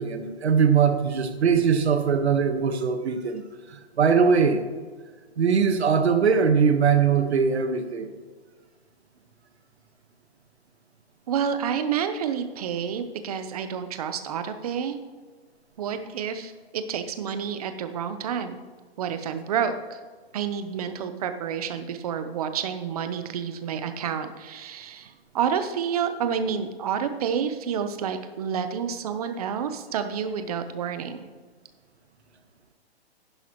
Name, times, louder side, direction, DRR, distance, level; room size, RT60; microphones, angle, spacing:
voice 1, 0.0-3.4 3.7-4.6 5.4-8.1, right 6 dB, 85° right, 8 dB, 1.5 m, -21 dB
voice 2, 11.3-15.0 15.8-18.6 19.0-20.0 20.3-31.3, right 7 dB, 35° right, 9 dB, 0.9 m, -29 dB
11.0 x 11.0 x 3.1 m, 1.5 s
hypercardioid pair, 160°, 32 cm